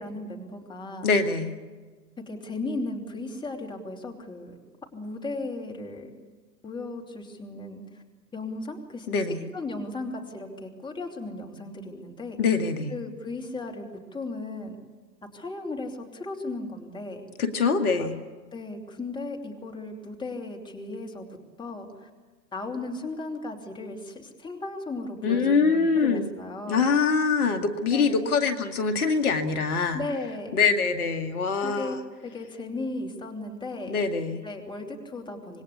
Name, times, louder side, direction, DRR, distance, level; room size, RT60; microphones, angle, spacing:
voice 1, 0.0-1.1 2.2-4.6 4.9-6.2 6.6-8.0 8.3-9.1 9.5-12.4 12.9-13.9 14.1-14.8 15.3-17.2 18.0-18.1 18.5-21.3 21.6-22.1 22.5-26.9 27.9-28.3 29.9-30.6 31.6-32.0 32.2-34.0 34.4-35.6, left 2 dB, 10° left, 2 dB, 3.0 m, -36 dB
voice 2, 1.0-1.5 9.1-9.4 12.4-12.9 17.4-18.1 25.2-26.3 26.7-30.0 30.5-32.0 33.9-34.4, left 5 dB, 60° left, 7 dB, 2.3 m, -24 dB
26.5 x 20.5 x 8.3 m, 1.4 s
figure-of-eight pair, 110°, 50 cm